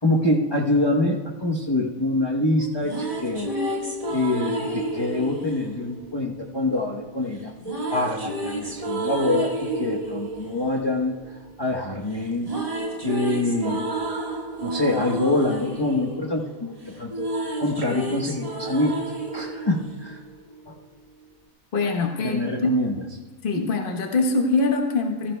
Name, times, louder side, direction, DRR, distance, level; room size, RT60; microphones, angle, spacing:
voice 1, 0.0-3.5 4.1-7.5 7.9-12.5 13.0-13.8 14.6-17.3 17.6-19.0 19.3-20.2 20.7-20.8 22.2-23.0, left 2 dB, 20° left, -2 dB, 0.9 m, -25 dB
sound 1, 2.6-6.8 7.6-11.8 12.1-20.6, right 1 dB, 25° right, 1.6 m, -31 dB
voice 2, 21.7-22.8 23.4-25.3, left 3 dB, 40° left, 2 dB, 1.2 m, -23 dB
15.5 x 14.5 x 2.2 m, 1.2 s
omnidirectional pair, 1.5 m